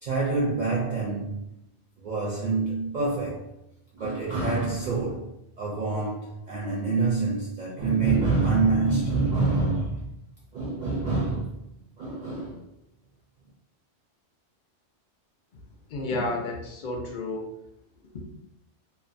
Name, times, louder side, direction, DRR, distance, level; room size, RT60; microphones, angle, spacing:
voice 1, 0.0-1.5 2.0-3.5 3.9-10.1 10.5-11.5 12.0-12.6, right 3 dB, 60° right, -4 dB, 0.5 m, -26 dB
voice 2, 15.9-17.5 18.1-18.3, left 2 dB, 55° left, 0 dB, 0.6 m, -31 dB
2.5 x 2.1 x 2.5 m, 0.80 s
omnidirectional pair, 1.2 m